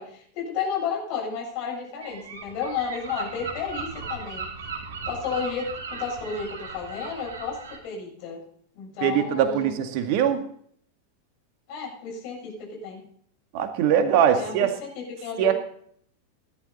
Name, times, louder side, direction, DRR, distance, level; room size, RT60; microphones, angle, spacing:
voice 1, 0.0-4.4 5.1-7.6 7.8-8.4 8.7-9.7 11.7-13.0 14.3-15.5, left 6 dB, 45° left, 0 dB, 7.7 m, -32 dB
Gull seagull, 2.0-7.8, right 5 dB, 60° right, 3.5 m, -37 dB
voice 2, 9.0-10.4 13.5-14.7 15.4-15.5, right 9 dB, 45° right, 7 dB, 1.9 m, -22 dB
18.5 x 11.5 x 4.2 m, 0.63 s
figure-of-eight pair, 90°, 0 cm